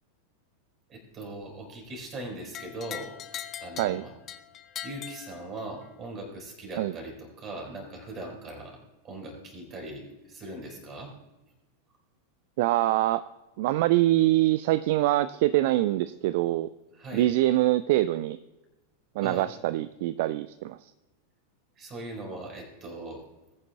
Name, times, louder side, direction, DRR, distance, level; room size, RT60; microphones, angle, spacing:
voice 1, 0.9-3.2 3.6-4.1 4.8-8.8 9.0-11.1 16.9-17.3 19.2-19.5 21.8-23.3, right 2 dB, 25° right, 1 dB, 4.6 m, -40 dB
sound 1, 2.5-5.9, left 10 dB, 30° left, 0.7 m, -41 dB
voice 2, 12.6-13.2 13.6-16.7 17.1-18.4 19.2-20.9, right 15 dB, 50° right, 15 dB, 0.3 m, -24 dB
20.5 x 9.7 x 2.3 m, 1.1 s
figure-of-eight pair, 90°, 0 cm